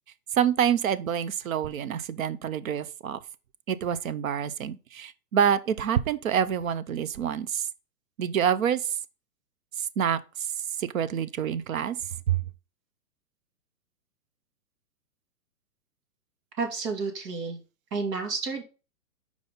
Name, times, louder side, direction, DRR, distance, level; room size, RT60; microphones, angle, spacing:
voice 1, 0.3-3.2 3.7-7.7 8.2-9.0 9.8-10.5 10.8-12.0 12.3-12.4, right 8 dB, 60° right, 0.6 m, -27 dB
voice 2, 16.6-17.6 17.9-18.6, right 4 dB, 85° right, 2.3 m, -30 dB
5.2 x 4.8 x 4.0 m
hypercardioid pair, 175°, 47 cm